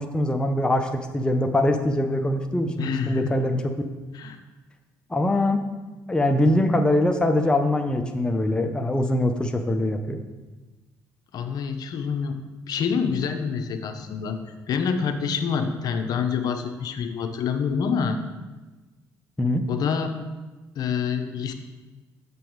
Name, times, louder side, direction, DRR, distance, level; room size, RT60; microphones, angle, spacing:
voice 1, 0.0-3.7 5.1-5.6 6.1-10.2 19.4-19.6, left 1 dB, 10° left, 4 dB, 0.7 m, -23 dB
voice 2, 2.8-3.3 4.1-4.4 11.3-12.4 12.7-14.4 14.7-18.2 19.7-20.2 20.8-21.5, left 6 dB, 65° left, 7 dB, 0.7 m, -26 dB
6.9 x 6.2 x 4.6 m, 1.2 s
supercardioid pair, 80°, 7 cm